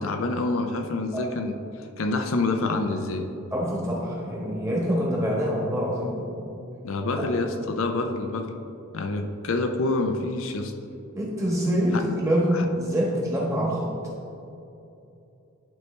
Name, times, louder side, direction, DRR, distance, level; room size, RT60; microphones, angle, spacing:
voice 1, 0.0-3.3 6.8-8.6 8.9-10.7 11.9-12.0 12.5-12.7, left 2 dB, 65° left, 5 dB, 0.5 m, -27 dB
voice 2, 3.5-6.3 7.2-7.3 11.1-13.9, equal, 15° right, -4 dB, 1.3 m, -25 dB
11.0 x 4.4 x 3.3 m, 2.8 s
head